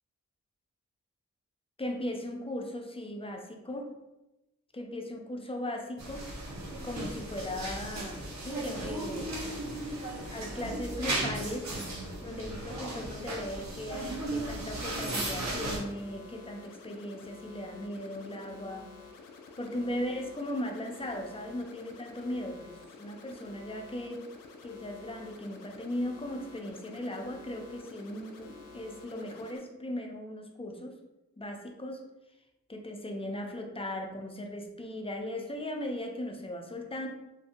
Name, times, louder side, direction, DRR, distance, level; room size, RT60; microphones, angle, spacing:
voice 1, 1.8-3.9 4.7-6.3 6.8-9.4 10.2-11.7 12.2-18.9 19.6-24.3 24.6-31.0 31.4-32.0 32.7-37.1, left 1 dB, 20° left, 3 dB, 0.4 m, -38 dB
sound 1, 6.0-15.8, right 1 dB, 55° right, 0.9 m, -36 dB
sound 2, 14.7-29.6, left 4 dB, 80° left, 0.5 m, -50 dB
2.6 x 2.5 x 2.5 m, 0.97 s
cardioid pair, 50°, 33 cm